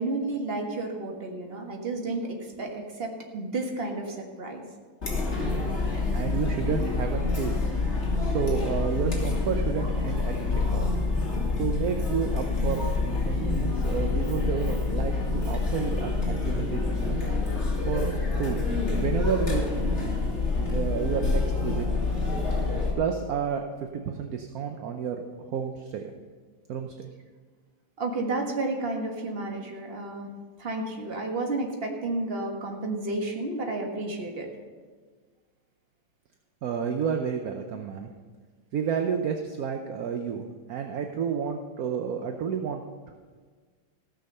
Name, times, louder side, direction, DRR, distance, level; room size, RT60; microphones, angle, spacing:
voice 1, 0.0-4.6 28.0-30.3 30.6-34.5, right 2 dB, 30° right, 2 dB, 1.6 m, -31 dB
Chatter, 5.0-22.9, left 3 dB, 35° left, 2.6 m, -27 dB
voice 2, 6.1-7.6 8.2-10.9 11.6-17.2 17.9-18.1 18.4-18.6 19.0-19.6 20.0-21.9 23.0-26.1 26.7-26.9 36.6-38.1 38.7-42.8, right 7 dB, 65° right, 4 dB, 1.0 m, -31 dB
15.0 x 6.5 x 6.6 m, 1.5 s
omnidirectional pair, 2.2 m